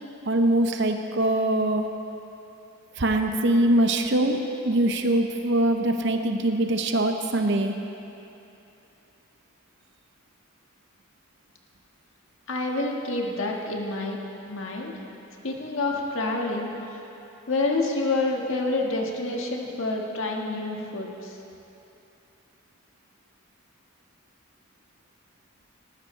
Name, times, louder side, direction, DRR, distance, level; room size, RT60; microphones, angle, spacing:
voice 1, 0.2-1.9 3.0-7.7, right 1 dB, 55° right, 5 dB, 0.7 m, -23 dB
voice 2, 12.5-14.2 14.5-15.0 15.4-16.7 17.5-21.4, left 2 dB, 70° left, 0 dB, 1.6 m, -28 dB
19.0 x 14.0 x 3.3 m, 2.9 s
head